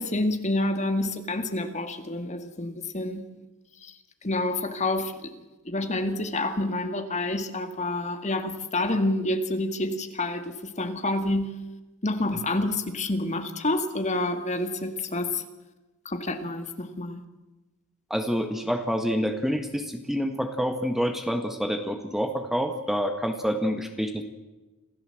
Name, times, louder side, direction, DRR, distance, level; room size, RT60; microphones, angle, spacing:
voice 1, 0.0-3.3 3.8-3.9 4.2-11.5 12.0-15.4 16.1-17.2, left 2 dB, 30° left, 8 dB, 2.0 m, -28 dB
voice 2, 18.1-24.2, equal, ahead, 6 dB, 1.6 m, -27 dB
27.0 x 16.0 x 7.9 m, 1.1 s
head